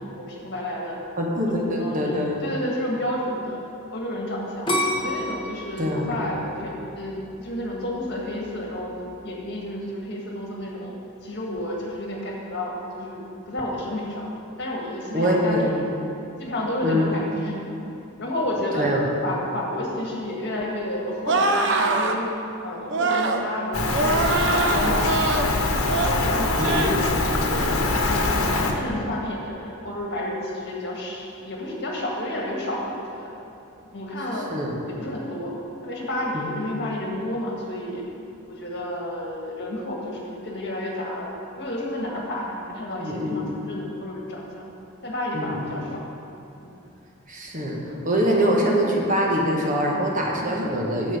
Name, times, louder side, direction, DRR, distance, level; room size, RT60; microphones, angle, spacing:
voice 1, 0.0-1.0 1.3-3.6 3.9-8.9 9.2-14.3 14.6-15.8 16.4-17.6 18.2-18.9 19.2-22.3 22.6-25.1 25.3-27.2 27.7-33.3 33.9-34.5 34.9-35.5 35.8-38.0 38.5-44.7 45.0-46.0, left 1 dB, 50° left, -2 dB, 1.7 m, -31 dB
voice 2, 1.2-2.4 5.8-6.1 15.1-15.7 16.8-17.1 18.7-19.0 26.6-26.9 27.4-27.6 34.5-34.8 36.3-36.5 43.0-43.4 45.3-45.6 47.3-47.8 48.0-51.2, equal, 40° right, -1 dB, 1.1 m, -24 dB
sound 1, 4.7-7.6 8.1-8.6, left 1 dB, 20° left, 1.0 m, -28 dB
sound 2, 21.2-22.2 22.9-23.4 23.9-25.5 25.9-26.2 26.6-27.0 27.4-27.7, right 3 dB, 55° right, 0.6 m, -23 dB
Rain, 23.7-28.7, left 2 dB, 80° left, 1.0 m, -23 dB
9.9 x 6.5 x 5.3 m, 2.8 s
head